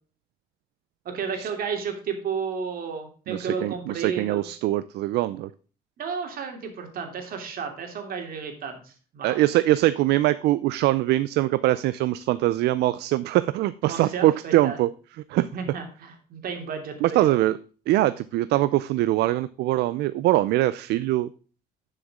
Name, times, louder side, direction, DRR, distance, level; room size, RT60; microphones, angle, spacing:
voice 1, 1.0-4.4 6.0-9.4 13.9-14.8 15.5-17.4 18.5-18.6, right 6 dB, 60° right, 4 dB, 3.0 m, -32 dB
voice 2, 3.3-5.5 9.2-14.9 15.3-15.5 17.0-17.6 17.9-21.3, right 16 dB, 80° right, 15 dB, 0.5 m, -23 dB
11.0 x 6.7 x 3.7 m, 0.39 s
cardioid pair, 110°, 17 cm